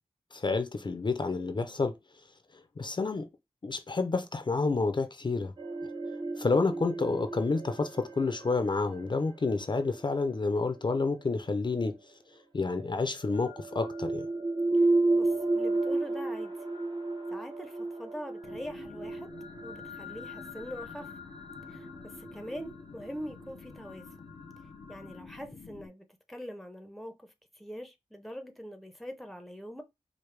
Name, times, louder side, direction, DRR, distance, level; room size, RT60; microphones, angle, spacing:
voice 1, 0.3-1.9 2.8-3.3 3.6-5.5 6.4-12.0 12.5-14.3, left 3 dB, 45° left, 0.5 m, -29 dB
sound 1, 5.6-11.6 12.8-25.2, right 2 dB, 45° right, 0.8 m, -33 dB
voice 2, 15.1-16.5 17.3-19.3 19.6-21.1 21.7-24.1 24.9-29.8, equal, ahead, 0.6 m, -43 dB
sound 2, 18.4-25.9, left 4 dB, 90° left, 0.6 m, -49 dB
4.6 x 2.1 x 3.3 m
wide cardioid pair, 70°, 11 cm